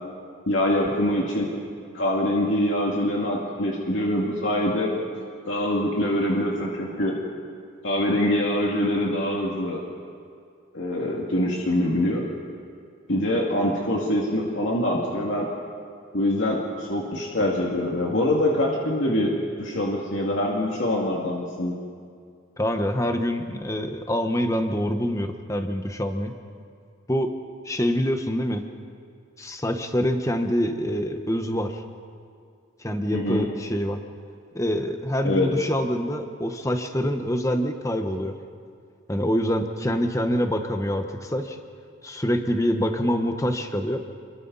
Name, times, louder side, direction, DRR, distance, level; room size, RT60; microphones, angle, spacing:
voice 1, 0.5-1.5 1.9-4.9 5.4-7.2 7.8-9.8 10.7-12.2 13.1-15.5 16.1-21.7 33.1-33.5 35.2-35.5, left 1 dB, 70° left, -3 dB, 2.5 m, -24 dB
voice 2, 22.6-26.4 27.1-27.3 27.6-28.6 29.4-31.8 32.8-34.0 34.5-38.3 39.1-41.6 42.0-44.0, equal, 15° left, 6 dB, 1.2 m, -25 dB
28.5 x 23.5 x 4.2 m, 2.3 s
head